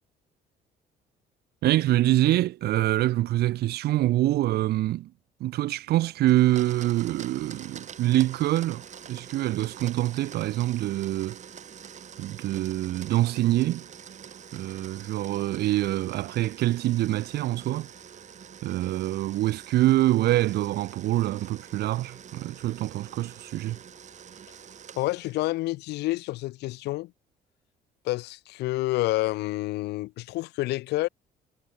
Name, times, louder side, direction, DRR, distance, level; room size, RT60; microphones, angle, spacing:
voice 1, 1.6-5.1 5.4-8.8 9.1-11.4 12.2-13.8 14.5-17.9 18.6-23.8, right 15 dB, 75° right, 1.7 m, -25 dB
Domestic sounds home sounds, 6.3-25.5, right 8 dB, 45° right, 7.4 m, -46 dB
voice 2, 25.0-27.1 28.0-31.1, left 18 dB, 85° left, 1.4 m, -28 dB
cardioid pair, 110°, 17 cm